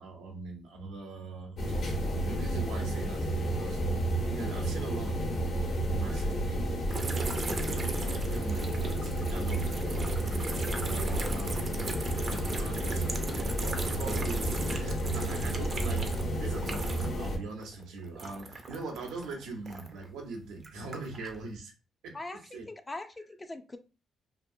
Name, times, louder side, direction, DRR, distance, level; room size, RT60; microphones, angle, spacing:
voice 1, 0.0-3.8 4.3-6.7 7.1-10.1 10.8-13.1 13.6-21.7 22.0-22.7, right 3 dB, 90° right, 1 dB, 0.8 m, -42 dB
sound 1, 1.6-17.4, right 1 dB, 60° left, 1.1 m, -31 dB
sound 2, 6.9-17.3 17.5-20.1 20.6-21.4, right 3 dB, 40° right, 0.6 m, -39 dB
voice 2, 11.0-11.4 11.7-11.9 22.1-23.8, left 2 dB, 20° left, 7 dB, 0.4 m, -43 dB
2.7 x 2.5 x 2.6 m, 0.31 s
cardioid pair, 90°, 0 cm